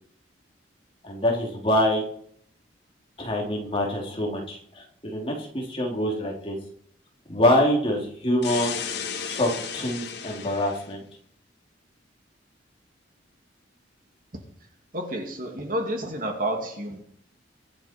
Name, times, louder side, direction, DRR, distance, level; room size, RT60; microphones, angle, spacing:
voice 1, 1.0-2.0 3.2-6.6 7.3-8.7 9.2-11.0, left 1 dB, 30° left, -1 dB, 3.0 m, -25 dB
sound 1, 8.4-10.9, left 6 dB, 60° left, 1.8 m, -34 dB
voice 2, 14.9-17.0, right 1 dB, 45° right, 3 dB, 2.6 m, -30 dB
23.5 x 8.9 x 4.5 m, 0.63 s
head